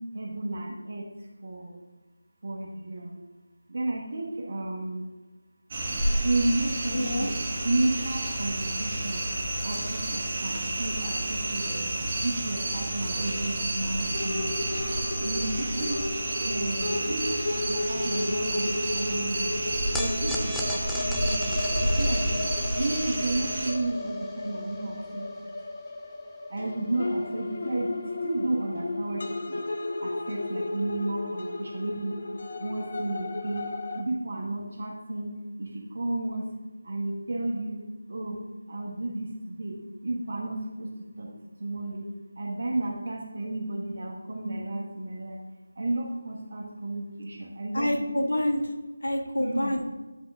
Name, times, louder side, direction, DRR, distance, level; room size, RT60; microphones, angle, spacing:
voice 1, 0.1-1.1 1.4-1.8 2.4-3.2 3.7-5.1 6.2-7.3 7.6-9.2 9.6-11.8 12.2-14.6 15.2-16.0 16.3-19.5 19.9-22.4 22.7-25.2 26.5-28.0 28.2-29.6 30.0-32.1 32.6-33.7 33.9-35.3 35.6-36.5 36.8-38.4 38.7-39.8 40.0-40.9 41.2-41.3 41.6-42.1 42.4-45.4 45.8-47.9 49.5-49.7, right 2 dB, 50° right, 1 dB, 1.3 m, -32 dB
sound 1, 5.7-23.7, right 1 dB, 30° right, 1.3 m, -30 dB
voice 2, 6.9-7.3 47.7-48.6 49.0-49.8, left 1 dB, 75° left, 1 dB, 1.4 m, -27 dB
sound 2, 14.1-34.0, left 2 dB, 45° left, 0.7 m, -34 dB
sound 3, 19.9-26.3, left 1 dB, ahead, 0.4 m, -40 dB
10.5 x 3.8 x 3.7 m, 1.2 s
figure-of-eight pair, 165°, 0 cm